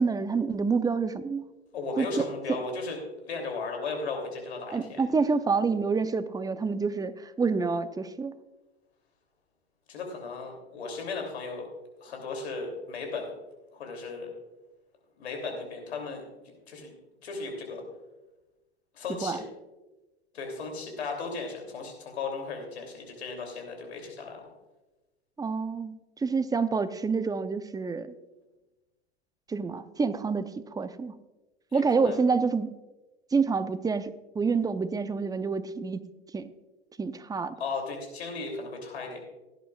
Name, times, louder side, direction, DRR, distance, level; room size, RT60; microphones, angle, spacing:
voice 1, 0.0-1.5 2.0-2.3 4.7-8.4 19.2-19.4 25.4-28.1 29.5-31.1 31.7-32.7 33.3-36.0 36.3-36.5 37.0-37.5, right 4 dB, 10° right, 12 dB, 0.6 m, -28 dB
voice 2, 1.7-3.0 3.3-5.0 9.9-11.7 12.0-13.3 13.7-14.3 15.2-16.2 16.7-16.9 17.2-17.8 18.9-19.4 20.3-24.5 31.7-32.2 37.6-39.2, left 4 dB, 80° left, 2 dB, 3.1 m, -36 dB
17.0 x 10.5 x 2.4 m, 1.1 s
hypercardioid pair, 85°, 32 cm